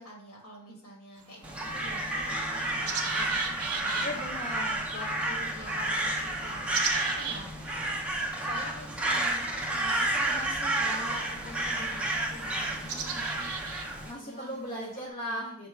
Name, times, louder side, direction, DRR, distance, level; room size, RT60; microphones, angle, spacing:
voice 1, 0.0-7.9 8.4-10.4 10.9-13.5 14.1-14.7 15.3-15.4, left 1 dB, 85° left, -2 dB, 1.4 m, -47 dB
sound 1, 1.2-15.1, right 6 dB, 75° right, 0.6 m, -41 dB
Crow, 1.4-14.1, right 1 dB, 5° right, 0.5 m, -31 dB
voice 2, 4.0-4.8 10.3-11.3 14.0-15.7, equal, 30° left, -5 dB, 0.8 m, -37 dB
5.6 x 2.1 x 4.4 m, 0.64 s
head